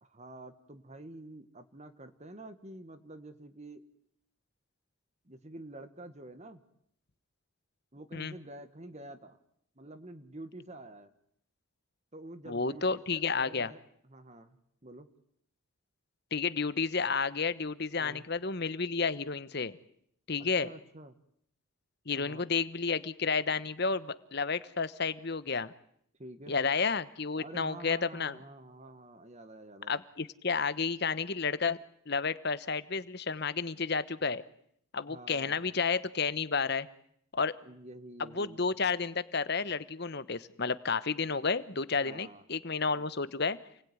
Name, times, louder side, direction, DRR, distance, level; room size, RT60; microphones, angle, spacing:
voice 1, 0.0-3.8 5.2-6.6 7.9-9.4 9.8-11.1 12.1-13.8 14.1-15.1 17.9-18.3 20.4-21.2 22.1-22.5 26.2-26.6 27.4-30.0 35.1-35.7 37.6-38.6 42.0-42.4, right 2 dB, 30° right, 9 dB, 1.5 m, -48 dB
voice 2, 12.5-13.7 16.3-19.7 20.3-20.7 22.1-25.7 26.5-28.4 29.9-31.8 32.1-34.4 34.9-36.9 37.3-37.5 38.3-43.6, left 5 dB, 50° left, 14 dB, 1.1 m, -31 dB
29.0 x 20.0 x 9.7 m, 0.70 s
head